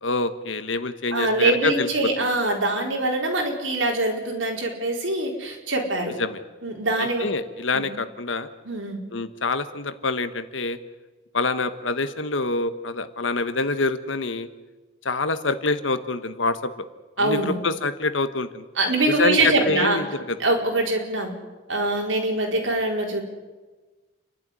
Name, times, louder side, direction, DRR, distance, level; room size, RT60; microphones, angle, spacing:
voice 1, 0.0-2.1 6.2-6.4 7.0-8.5 9.1-10.8 11.3-14.5 15.0-16.8 17.2-18.6 19.1-20.4, left 3 dB, 85° left, 11 dB, 1.4 m, -26 dB
voice 2, 1.1-6.1 6.6-7.3 7.7-7.9 8.6-9.0 17.2-17.6 18.8-20.0 20.4-21.3 21.7-23.2, right 2 dB, 85° right, 1 dB, 4.6 m, -23 dB
29.0 x 12.0 x 9.9 m, 1.3 s
head